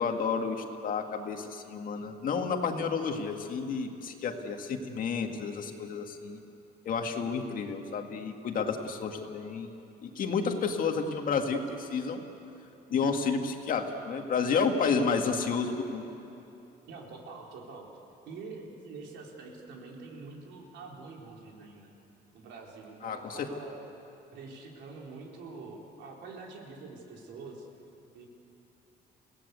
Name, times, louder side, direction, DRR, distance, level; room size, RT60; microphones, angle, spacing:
voice 1, 0.0-6.4 6.9-9.7 10.0-12.2 12.9-16.0 23.0-23.5, left 5 dB, 50° left, 4 dB, 2.0 m, -31 dB
voice 2, 16.9-17.9 18.3-21.9 22.3-23.8 24.3-27.7 28.1-28.3, right 4 dB, 85° right, -1 dB, 4.1 m, -45 dB
29.5 x 17.5 x 8.3 m, 2.9 s
cardioid pair, 155°, 18 cm